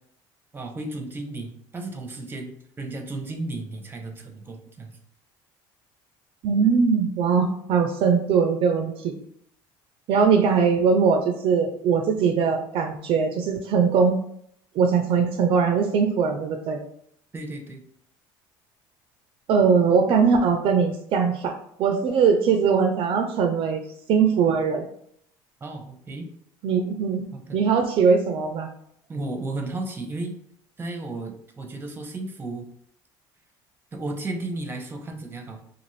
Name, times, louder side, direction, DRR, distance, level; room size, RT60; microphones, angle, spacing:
voice 1, 0.5-4.9 17.3-17.8 25.6-26.3 27.3-27.6 29.1-30.4 30.8-32.7 33.9-35.6, right 2 dB, 20° right, 4 dB, 0.7 m, -34 dB
voice 2, 6.4-9.1 10.1-14.2 14.8-16.8 19.5-21.5 21.8-23.8 24.1-24.9 26.6-27.3 27.5-28.7, right 6 dB, 55° right, 4 dB, 0.4 m, -21 dB
2.5 x 2.5 x 3.1 m, 0.67 s
supercardioid pair, 90°, 11 cm